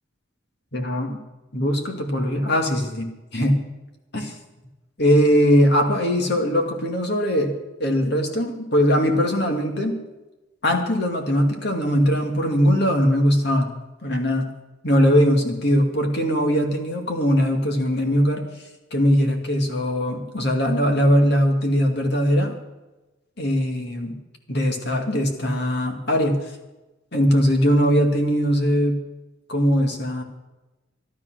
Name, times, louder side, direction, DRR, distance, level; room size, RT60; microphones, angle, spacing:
voice 1, 0.7-1.2 1.5-3.6 4.1-4.3 5.0-10.0 10.6-13.7 14.0-14.5 14.8-18.4 18.9-22.6 23.4-24.1 24.5-26.4 27.1-29.0 29.5-30.2, equal, 55° left, 3 dB, 2.4 m, -20 dB
13.0 x 12.0 x 6.3 m, 1.1 s
head